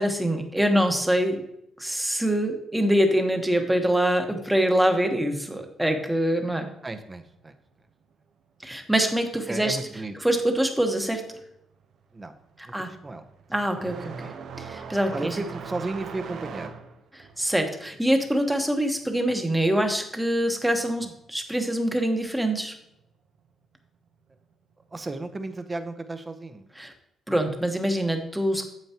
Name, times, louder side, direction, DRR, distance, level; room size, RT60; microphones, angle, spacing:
voice 1, 0.0-1.4 1.8-6.7 8.6-9.8 10.2-11.2 12.7-12.9 13.5-14.3 14.6-15.4 17.1-22.7 26.8-26.9 27.3-28.7, right 1 dB, 5° right, 5 dB, 1.2 m, -24 dB
voice 2, 6.8-7.5 9.5-10.1 12.1-12.3 12.6-13.3 15.1-16.7 21.0-21.1 24.9-26.7, right 2 dB, 25° right, 8 dB, 0.8 m, -34 dB
sound 1, 11.2-11.5 11.8-20.1 20.4-21.4 22.4-22.5 23.3-23.4 25.2-25.3, right 6 dB, 70° right, 0.8 m, -41 dB
9.0 x 7.1 x 2.9 m, 0.80 s
cardioid pair, 90°, 0 cm